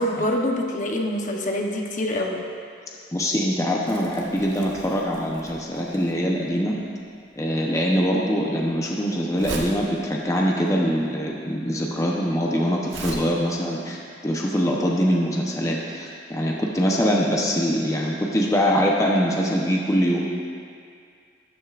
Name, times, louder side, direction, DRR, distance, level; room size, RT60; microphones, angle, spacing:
voice 1, 0.0-2.5, left 1 dB, 45° left, 1 dB, 0.9 m, -25 dB
voice 2, 3.1-6.8 7.4-20.2, equal, 15° left, -2 dB, 0.8 m, -23 dB
Crumpling crinkling, 3.9-13.1, right 2 dB, 85° right, 1.3 m, -40 dB
13.5 x 11.0 x 2.5 m, 2.3 s
head